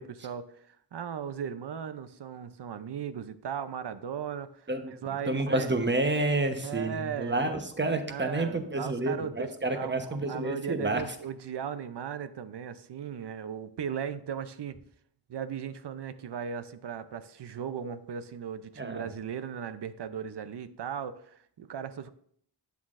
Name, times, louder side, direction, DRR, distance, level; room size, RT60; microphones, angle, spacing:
voice 1, 0.0-5.7 6.6-7.6 8.1-14.8 15.3-22.1, right 7 dB, 70° right, 12 dB, 0.6 m, -37 dB
voice 2, 4.7-11.0 18.8-19.0, right 2 dB, 25° right, 6 dB, 1.0 m, -29 dB
11.5 x 8.4 x 2.5 m, 0.66 s
wide cardioid pair, 100°, 42 cm